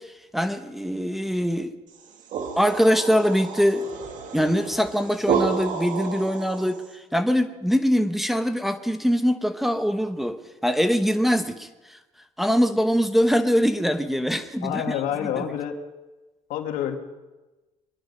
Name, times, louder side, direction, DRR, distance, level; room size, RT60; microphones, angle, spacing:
voice 1, 0.3-1.7 2.6-3.9 4.3-11.7 12.4-14.9 15.4-15.5, equal, ahead, 7 dB, 1.0 m, -23 dB
sound 1, 1.9-6.9, right 6 dB, 65° right, 2.2 m, -30 dB
voice 2, 14.6-15.7 16.5-17.0, left 10 dB, 80° left, 5 dB, 1.9 m, -28 dB
23.5 x 11.5 x 5.4 m, 1.1 s
cardioid pair, 95°, 14 cm